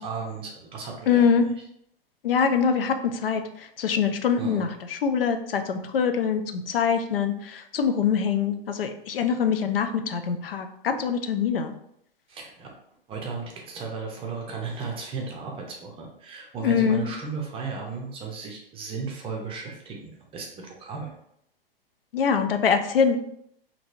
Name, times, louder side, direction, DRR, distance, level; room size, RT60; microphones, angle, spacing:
voice 1, 0.0-1.3 4.4-4.7 12.3-12.7 13.1-21.1, right 4 dB, 20° right, 1 dB, 0.5 m, -35 dB
voice 2, 1.1-1.5 2.2-11.7 16.6-17.0 22.1-23.2, left 6 dB, 75° left, 7 dB, 0.4 m, -24 dB
2.9 x 2.8 x 2.5 m, 0.73 s
figure-of-eight pair, 105°, 29 cm